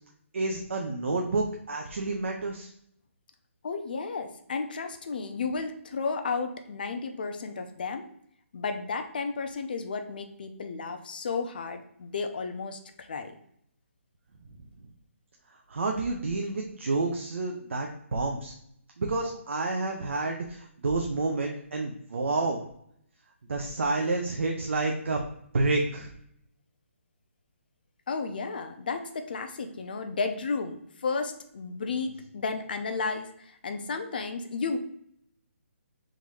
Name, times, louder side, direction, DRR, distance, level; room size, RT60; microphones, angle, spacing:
voice 1, 0.3-2.7 15.7-18.5 19.0-22.6 23.5-25.2 25.5-26.1, right 3 dB, 60° right, 1 dB, 0.7 m, -29 dB
voice 2, 3.6-8.1 8.5-13.3 28.1-34.8, left 4 dB, 40° left, 6 dB, 0.5 m, -33 dB
3.8 x 2.7 x 4.7 m, 0.69 s
hypercardioid pair, 170°, 7 cm